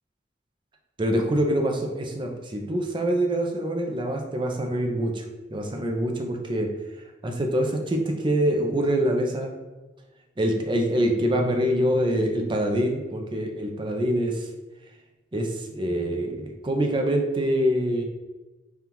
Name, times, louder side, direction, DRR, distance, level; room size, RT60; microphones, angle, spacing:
voice 1, 1.0-5.2 5.5-6.7 7.2-9.5 10.4-14.5 15.3-18.0, right 1 dB, 25° right, 3 dB, 0.4 m, -25 dB
5.3 x 2.3 x 2.9 m, 1.1 s
head